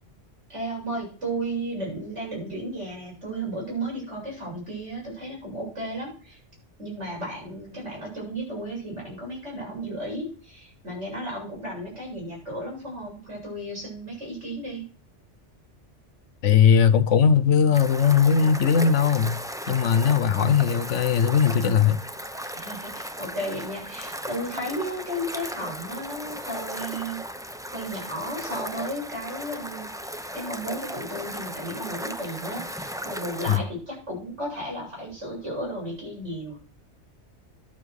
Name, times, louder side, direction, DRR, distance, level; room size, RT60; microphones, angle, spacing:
voice 1, 0.5-6.4 6.8-14.8 22.5-27.2 27.7-29.9 30.3-36.6, right 1 dB, 75° right, 8.3 m, -34 dB
voice 2, 16.4-19.4 19.7-22.0 33.5-33.6, left 7 dB, 85° left, 1.2 m, -19 dB
sound 1, 17.7-33.6, equal, 5° right, 0.5 m, -36 dB
11.5 x 7.3 x 6.5 m
omnidirectional pair, 1.2 m